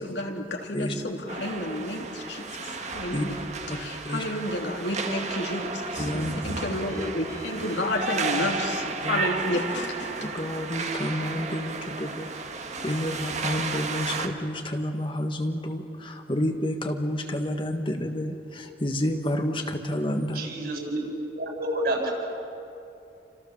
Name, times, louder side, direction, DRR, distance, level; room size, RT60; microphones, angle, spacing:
voice 1, 0.0-3.4 3.7-10.3, left 1 dB, 85° left, 1 dB, 3.2 m, -31 dB
sound 1, 1.3-14.3, right 4 dB, 40° right, 1.7 m, -33 dB
voice 2, 6.0-6.3 9.0-9.2 10.2-12.3 12.8-20.5, left 1 dB, 30° left, 4 dB, 1.6 m, -29 dB
voice 3, 20.3-21.0 21.4-22.1, right 1 dB, 60° right, 0 dB, 7.8 m, -29 dB
30.0 x 26.0 x 7.3 m, 2.7 s
head